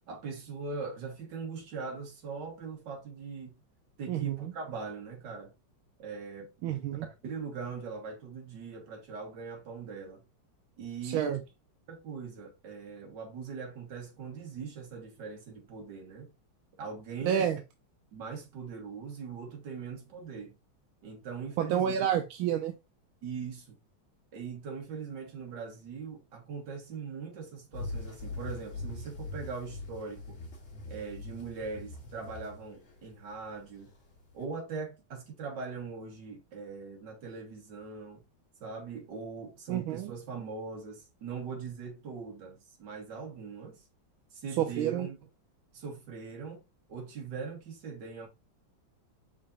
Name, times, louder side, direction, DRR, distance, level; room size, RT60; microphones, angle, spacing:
voice 1, 0.1-3.6 4.0-5.5 6.0-6.5 7.2-10.2 10.8-11.4 11.9-16.3 16.8-17.5 18.1-20.5 21.0-22.1 23.2-23.8 24.3-30.4 30.9-33.9 34.3-38.2 38.6-43.8 44.3-45.2 45.7-46.6 46.9-48.3, right 5 dB, 60° right, 2.0 m, -41 dB
voice 2, 4.1-4.5 6.6-7.1 11.0-11.4 17.2-17.6 21.6-22.7 39.7-40.1 44.6-45.1, right 9 dB, 90° right, 1.4 m, -29 dB
sound 1, 27.7-34.4, left 2 dB, 40° left, 1.6 m, -42 dB
5.5 x 3.8 x 2.5 m
omnidirectional pair, 2.2 m